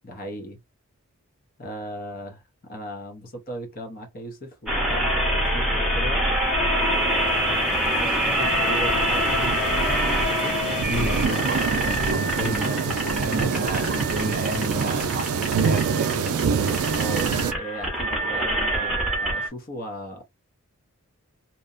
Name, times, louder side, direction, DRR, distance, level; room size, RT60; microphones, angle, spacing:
voice 1, 0.0-0.6 1.6-6.2 6.9-9.9 10.2-10.6 16.9-20.3, right 1 dB, 40° left, 0.7 m, -37 dB
sound 1, 4.7-19.5, equal, ahead, 0.8 m, -25 dB
sound 2, 6.6-17.5, right 6 dB, 80° right, 0.4 m, -27 dB
voice 2, 10.7-16.3, right 1 dB, 35° right, 0.7 m, -31 dB
2.8 x 2.1 x 2.4 m
head